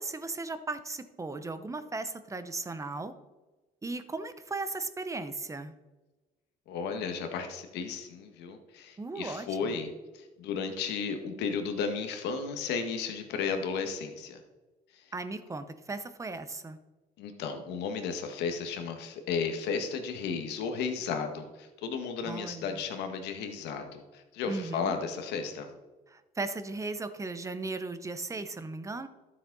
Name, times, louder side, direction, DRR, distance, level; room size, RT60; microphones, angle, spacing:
voice 1, 0.0-3.1 3.8-5.7 9.0-9.7 15.1-16.8 22.2-22.8 24.5-25.0 26.1-29.1, right 3 dB, 20° right, 11 dB, 0.9 m, -37 dB
voice 2, 6.7-9.9 10.4-14.4 17.2-24.0 24.3-25.7, left 5 dB, 85° left, 5 dB, 1.7 m, -34 dB
12.5 x 7.4 x 4.1 m, 1.2 s
cardioid pair, 110°, 17 cm